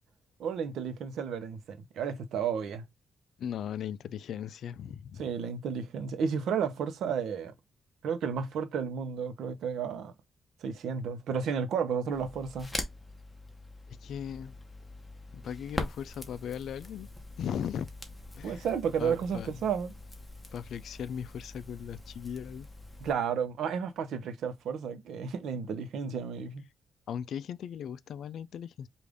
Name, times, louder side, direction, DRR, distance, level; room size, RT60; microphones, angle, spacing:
voice 1, 0.4-2.8 5.2-7.5 8.0-10.1 10.6-12.7 18.4-19.9 23.0-26.6, right 6 dB, 85° right, 0.7 m, -32 dB
voice 2, 3.4-5.3 13.9-14.6 15.3-17.1 17.4-17.9 18.4-18.7 19.0-19.6 20.5-22.7 27.1-28.9, left 8 dB, 75° left, 0.3 m, -38 dB
Crackle, 12.1-23.1, left 1 dB, 10° left, 1.0 m, -43 dB
5.0 x 2.5 x 3.4 m
cardioid pair, 115°, 0 cm